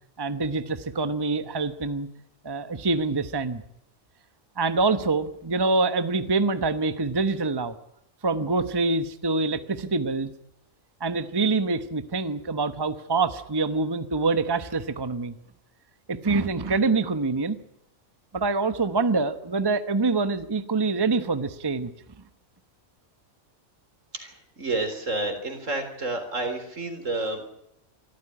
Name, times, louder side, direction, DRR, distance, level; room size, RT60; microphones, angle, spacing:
voice 1, 0.2-2.1 2.4-3.6 4.6-7.7 8.2-10.3 11.0-15.4 16.1-17.6 18.3-21.9, right 3 dB, 20° right, 11 dB, 0.9 m, -25 dB
voice 2, 24.1-27.5, right 2 dB, 70° right, 7 dB, 4.2 m, -30 dB
24.0 x 14.0 x 9.9 m, 0.78 s
omnidirectional pair, 1.4 m